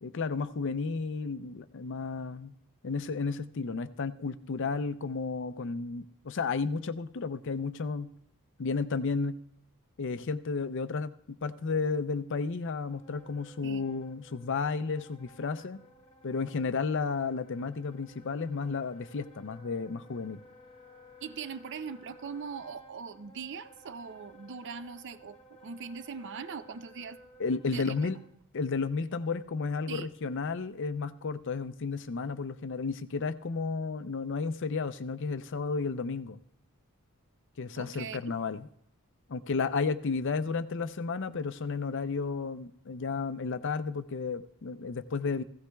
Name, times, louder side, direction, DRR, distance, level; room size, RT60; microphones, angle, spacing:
voice 1, 0.0-2.5 2.8-8.1 8.6-9.4 10.0-15.8 16.2-20.4 27.4-28.2 28.5-36.4 37.6-38.7 39.3-45.4, left 4 dB, 55° left, 12 dB, 0.5 m, -32 dB
Wind instrument woodwind instrument, 12.8-28.3, equal, 25° left, 1.1 m, -56 dB
voice 2, 21.2-27.2 27.7-28.1 29.9-30.1 37.8-38.4, right 5 dB, 55° right, 13 dB, 0.5 m, -41 dB
16.0 x 16.0 x 2.3 m, 0.72 s
head